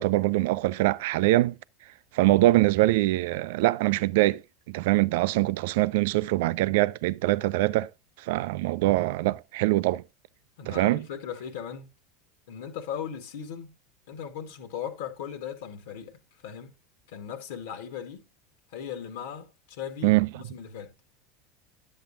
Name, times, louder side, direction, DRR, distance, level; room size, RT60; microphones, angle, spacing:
voice 1, 0.0-1.6 2.1-4.4 4.7-7.9 8.2-10.0 10.6-11.0 20.0-20.3, right 18 dB, 70° right, 0.4 m, -23 dB
voice 2, 10.6-11.9 12.5-13.8 14.1-16.7 17.1-18.3 18.7-20.9, left 8 dB, 70° left, 1.8 m, -38 dB
10.5 x 8.0 x 2.7 m
hypercardioid pair, 85°, 0 cm